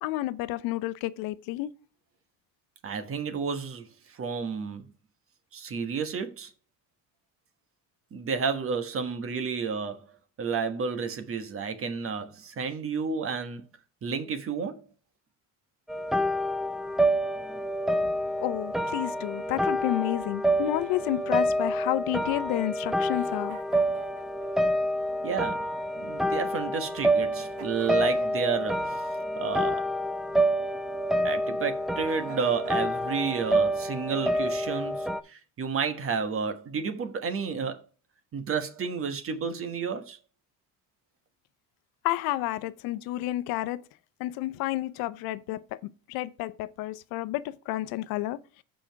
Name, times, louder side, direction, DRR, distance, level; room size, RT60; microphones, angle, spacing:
voice 1, 0.0-1.7 18.4-23.6 42.0-43.8 44.2-48.4, left 16 dB, 85° left, 0.7 m, -30 dB
voice 2, 2.8-4.8 5.5-6.5 8.1-10.0 10.4-13.6 14.0-14.8 25.2-25.7 26.0-29.1 29.4-29.9 31.2-37.8 38.3-40.2, right 5 dB, 40° right, 1.3 m, -31 dB
sound 1, 15.9-35.2, equal, ahead, 0.4 m, -28 dB
Giggle, 20.6-22.4 23.1-24.7 25.8-26.7 27.4-28.6 28.8-29.4 30.6-31.4 32.0-34.1, right 7 dB, 90° right, 1.6 m, -51 dB
7.1 x 5.1 x 4.6 m
cardioid pair, 115°, 34 cm